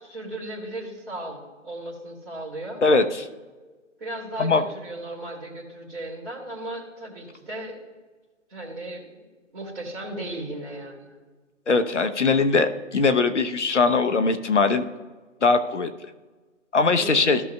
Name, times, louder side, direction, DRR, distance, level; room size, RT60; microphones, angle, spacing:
voice 1, 0.0-2.8 4.0-7.8 8.5-9.3 9.5-11.1 16.9-17.3, right 1 dB, 45° right, -5 dB, 2.6 m, -36 dB
voice 2, 2.8-3.3 4.4-4.6 11.7-14.9 15.4-15.9 16.7-17.4, left 4 dB, 65° left, 8 dB, 0.9 m, -21 dB
15.0 x 6.3 x 2.3 m, 1.3 s
figure-of-eight pair, 160°, 38 cm